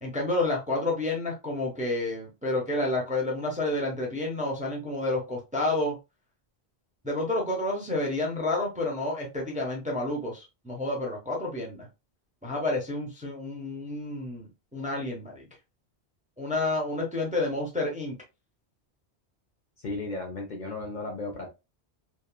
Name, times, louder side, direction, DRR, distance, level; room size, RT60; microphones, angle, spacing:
voice 1, 0.0-6.0 7.0-11.9 12.4-15.4 16.4-18.1, left 2 dB, 10° right, 0 dB, 0.5 m, -30 dB
voice 2, 19.8-21.5, left 2 dB, 55° left, 1 dB, 0.6 m, -34 dB
2.9 x 2.2 x 2.2 m, 0.26 s
omnidirectional pair, 1.1 m